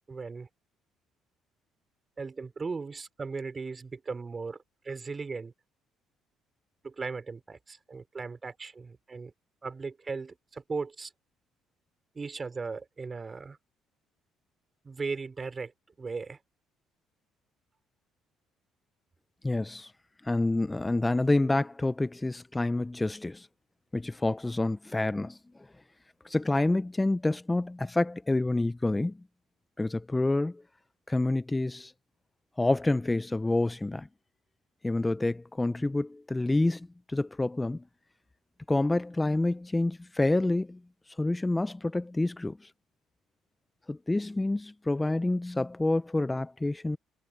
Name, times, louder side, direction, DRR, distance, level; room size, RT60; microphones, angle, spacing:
voice 1, 0.1-0.5 2.2-4.6 4.8-5.5 6.8-9.3 9.6-11.1 12.1-13.6 14.8-15.7 16.0-16.4, right 4 dB, 30° right, 4.4 m, -37 dB
voice 2, 19.4-19.9 20.2-23.5 23.9-25.4 26.2-29.2 29.8-30.6 31.1-31.9 32.6-34.1 34.8-37.8 38.7-40.8 41.2-42.6 43.9-47.0, left 2 dB, 15° left, 0.6 m, -28 dB
cardioid pair, 100°, 0 cm